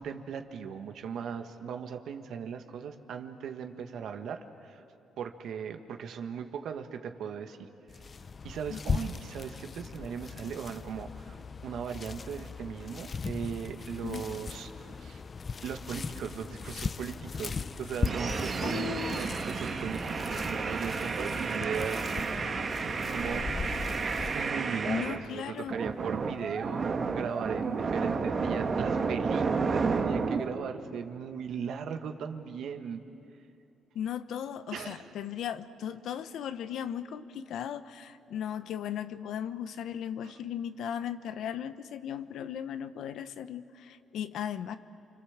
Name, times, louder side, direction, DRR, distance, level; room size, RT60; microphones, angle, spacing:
voice 1, 0.0-4.8 5.2-7.7 8.4-15.2 15.6-22.1 23.1-23.5 24.3-33.0 34.7-35.1 40.2-40.4, right 7 dB, 75° right, 5 dB, 1.7 m, -38 dB
sound 1, 7.9-24.5, left 5 dB, 40° left, 0.5 m, -38 dB
sound 2, 18.0-25.2 25.7-30.5, right 4 dB, 45° right, 1.9 m, -31 dB
voice 2, 18.6-19.3 24.9-25.8 33.9-44.8, left 9 dB, 75° left, 11 dB, 1.0 m, -37 dB
29.0 x 25.5 x 7.4 m, 2.8 s
cardioid pair, 90°, 0 cm